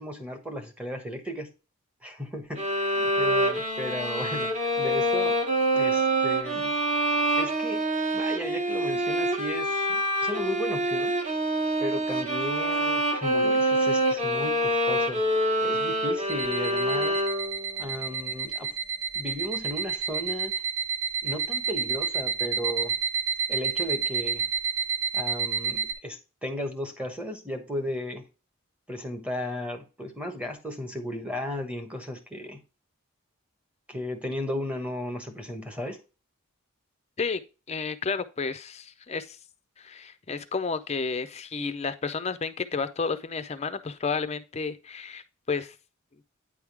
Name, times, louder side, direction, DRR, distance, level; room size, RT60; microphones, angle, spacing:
voice 1, 0.0-1.5 2.0-5.4 5.7-6.7 7.4-7.8 8.1-11.2 11.8-15.2 15.6-17.2 17.8-18.7 19.1-20.5 21.2-23.0 23.5-24.5 25.1-28.3 28.9-32.6 33.9-36.0, equal, 5° right, 3 dB, 1.0 m, -35 dB
sound 1, 2.6-17.7, right 1 dB, 35° right, 1.3 m, -26 dB
sound 2, 16.3-25.9, right 6 dB, 70° right, 1.0 m, -29 dB
voice 2, 37.7-39.4 39.8-45.7, left 4 dB, 30° left, 11 dB, 0.5 m, -31 dB
9.2 x 3.6 x 4.6 m, 0.31 s
head